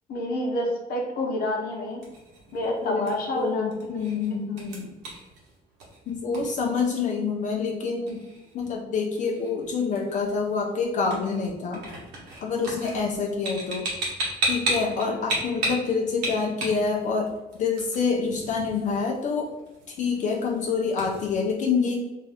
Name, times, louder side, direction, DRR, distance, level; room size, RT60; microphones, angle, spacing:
voice 1, 0.1-2.0 2.5-3.7 3.9-4.0, left 1 dB, 65° left, 0 dB, 0.8 m, -28 dB
sound 1, 1.7-21.3, right 2 dB, 90° right, 1.0 m, -36 dB
voice 2, 2.8-4.9 6.1-8.2 8.5-11.8 12.4-13.9 14.4-17.3 17.6-19.5 19.9-22.0, left 5 dB, 50° left, 1 dB, 0.4 m, -27 dB
2.5 x 2.3 x 3.3 m, 1.0 s
cardioid pair, 110°, 17 cm